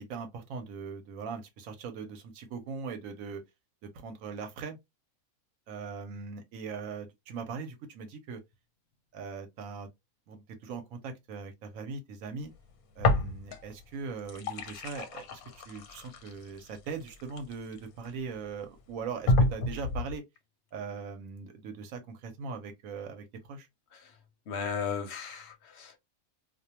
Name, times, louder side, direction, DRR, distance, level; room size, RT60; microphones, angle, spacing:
voice 1, 0.0-3.4 3.8-4.8 5.7-8.4 9.1-9.9 10.3-12.5 13.0-20.2 20.7-23.7, right 5 dB, 75° right, 1.0 m, -40 dB
sound 1, 13.0-13.8 14.1-18.1 18.6-18.7 19.3-20.2, left 2 dB, 90° left, 1.1 m, -29 dB
voice 2, 24.5-26.0, left 6 dB, 60° left, 0.8 m, -36 dB
2.4 x 2.2 x 2.8 m
omnidirectional pair, 1.5 m